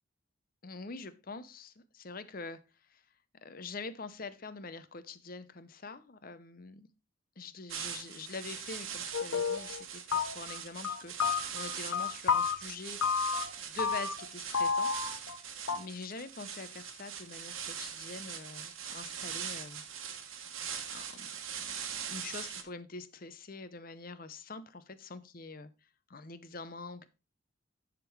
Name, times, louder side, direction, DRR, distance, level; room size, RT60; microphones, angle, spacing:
voice 1, 0.6-2.6 2.9-3.0 3.4-6.9 7.4-13.0 13.6-15.2 15.7-19.8 20.9-21.3 21.6-21.8 22.1-25.7 26.1-27.1, left 3 dB, 40° left, 0.7 m, -45 dB
sound 1, 7.7-22.6, right 8 dB, 70° right, 1.2 m, -42 dB
sound 2, 9.1-9.8 10.1-10.6 10.8-12.6 13.0-13.5 13.8-14.3 14.5-15.4 15.7-15.8, left 5 dB, 80° left, 0.7 m, -31 dB
10.5 x 3.8 x 4.5 m
head